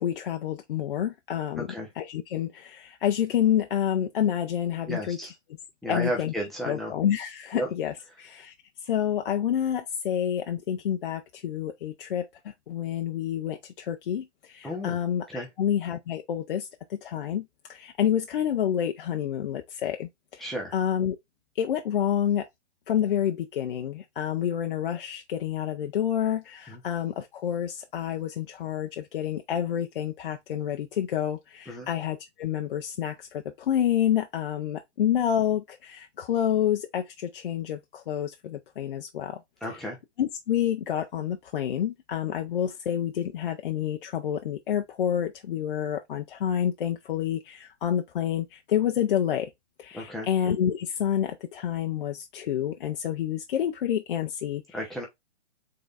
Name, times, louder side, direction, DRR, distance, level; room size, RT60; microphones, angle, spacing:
voice 1, 0.0-1.7 2.0-5.2 5.9-6.3 6.7-7.9 8.2-8.5 8.9-12.2 12.7-13.6 13.9-14.2 14.6-16.6 17.0-17.4 17.8-20.1 20.7-21.2 21.6-22.4 22.9-33.1 33.7-37.0 37.3-37.8 38.1-39.4 39.7-39.9 40.2-49.5 49.9-54.6, left 10 dB, 50° left, 0.5 m, -28 dB
voice 2, 4.9-5.3 5.8-6.9 7.5-7.7 14.6-15.0 15.3-15.5 20.4-20.7 26.7-26.8 31.7-31.9 39.6-40.0 49.9-50.3 54.7-55.1, equal, ahead, 0.5 m, -33 dB
3.8 x 3.1 x 4.0 m
hypercardioid pair, 145°, 36 cm